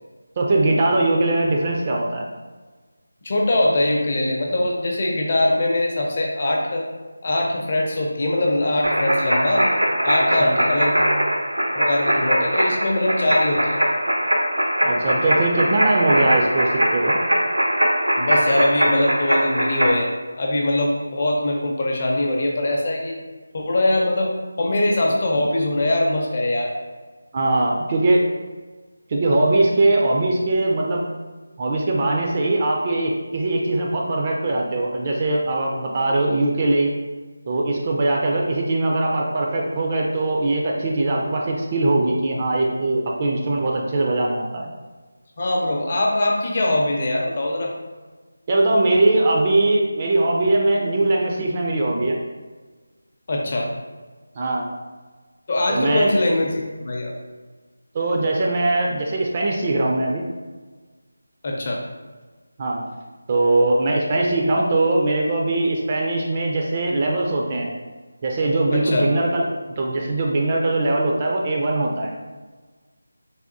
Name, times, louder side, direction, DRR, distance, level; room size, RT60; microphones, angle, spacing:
voice 1, 0.4-2.3 10.4-10.6 14.8-17.2 27.3-28.3 29.1-31.1 31.6-37.0 37.5-44.7 48.5-52.2 54.4-54.7 55.7-56.1 57.9-60.2 62.6-62.8 63.3-67.7 68.2-69.4 69.7-72.2, right 2 dB, 30° right, -1 dB, 0.3 m, -21 dB
voice 2, 3.2-6.9 7.2-9.7 10.0-11.0 11.7-13.8 18.2-23.2 23.5-26.7 45.4-47.7 53.3-53.7 55.5-57.1 61.4-61.9 68.7-69.1, left 1 dB, 40° left, 0 dB, 0.5 m, -22 dB
sound 1, 8.8-19.9, equal, 90° right, 0.6 m, -21 dB
3.4 x 2.3 x 2.5 m, 1.3 s
figure-of-eight pair, 165°, 0 cm